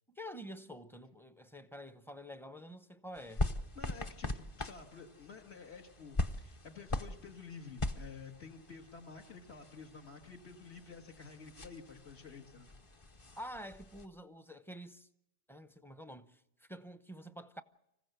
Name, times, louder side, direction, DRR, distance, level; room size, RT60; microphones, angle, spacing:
voice 1, 0.1-3.5 13.4-15.1 15.5-17.6, equal, 5° left, 0.5 m, -48 dB
sound 1, 3.1-14.1, left 2 dB, 30° left, 0.8 m, -41 dB
voice 2, 3.8-12.7, left 5 dB, 70° left, 1.8 m, -51 dB
26.0 x 15.5 x 8.0 m
omnidirectional pair, 1.2 m